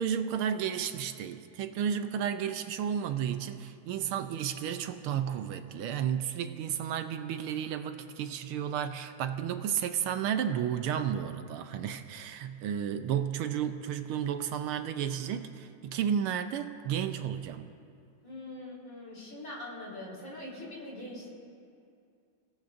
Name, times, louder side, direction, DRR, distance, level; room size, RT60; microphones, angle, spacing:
voice 1, 0.0-17.7, right 8 dB, 80° right, 8 dB, 1.5 m, -32 dB
voice 2, 18.2-21.3, left 1 dB, 35° left, -5 dB, 4.2 m, -42 dB
29.5 x 17.0 x 2.6 m, 2.4 s
omnidirectional pair, 2.4 m